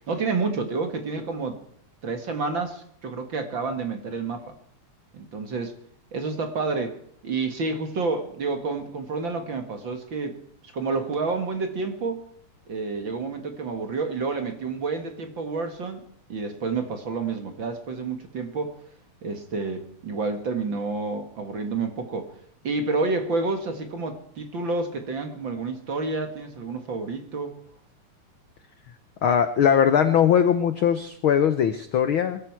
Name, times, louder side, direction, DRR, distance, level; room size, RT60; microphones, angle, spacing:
voice 1, 0.1-1.6 2.0-4.5 5.1-5.7 6.1-7.0 7.2-10.3 10.7-12.2 12.7-16.0 16.3-18.8 19.2-22.3 22.6-27.5, right 4 dB, 45° right, 2.1 m, -29 dB
voice 2, 29.2-32.4, left 8 dB, 70° left, 1.2 m, -20 dB
23.0 x 12.5 x 4.6 m
omnidirectional pair, 3.6 m